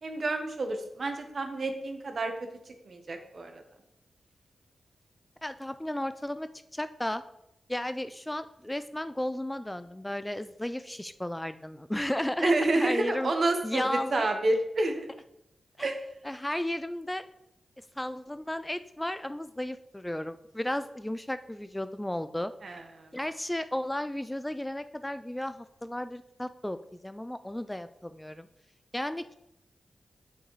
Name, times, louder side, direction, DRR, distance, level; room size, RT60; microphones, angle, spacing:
voice 1, 0.0-2.3 2.8-3.6 12.4-15.1 15.8-16.0 22.6-23.1, right 2 dB, 55° right, 5 dB, 1.0 m, -29 dB
voice 2, 5.4-7.2 7.7-13.3 13.6-14.3 15.8-15.9 16.2-17.2 18.0-22.5 23.1-26.8 27.0-28.5 28.9-29.3, left 1 dB, 10° left, 12 dB, 0.3 m, -34 dB
7.1 x 5.9 x 3.2 m, 0.81 s
cardioid pair, 70°, 0 cm